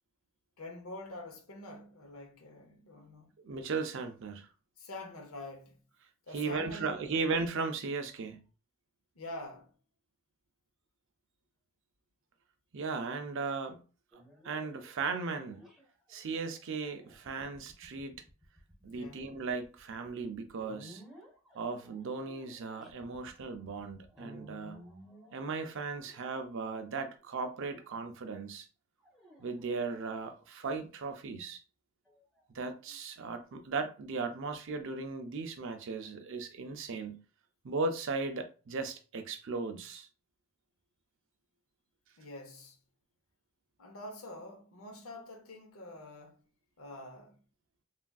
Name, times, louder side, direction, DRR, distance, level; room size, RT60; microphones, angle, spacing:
voice 1, 0.6-3.3 4.8-5.8 6.3-7.1 9.1-9.7 18.9-19.3 42.2-42.8 43.8-46.4 46.8-47.4, left 2 dB, 75° left, 0.8 m, -46 dB
voice 2, 3.4-4.5 6.3-8.4 12.7-13.8 14.1-15.6 16.1-18.2 18.8-21.0 21.5-24.8 25.3-28.7 29.4-31.6 32.5-37.2 37.6-40.1, right 4 dB, 60° right, 0.5 m, -37 dB
sound 1, 14.1-26.7 27.5-28.2 29.0-30.5 32.0-33.4, equal, ahead, 0.7 m, -57 dB
3.3 x 2.4 x 2.3 m
head